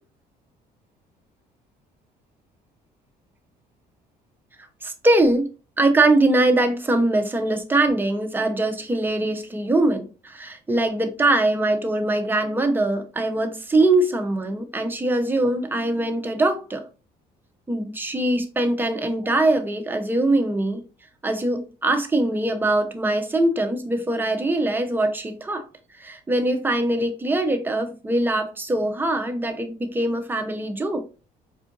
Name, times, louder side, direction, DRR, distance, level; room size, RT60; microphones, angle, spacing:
voice 1, 4.8-5.5 5.8-16.8 17.7-20.8 21.2-25.6 26.0-31.0, right 2 dB, 10° right, 0.6 m, -22 dB
4.5 x 2.5 x 2.5 m
cardioid pair, 110°, 17 cm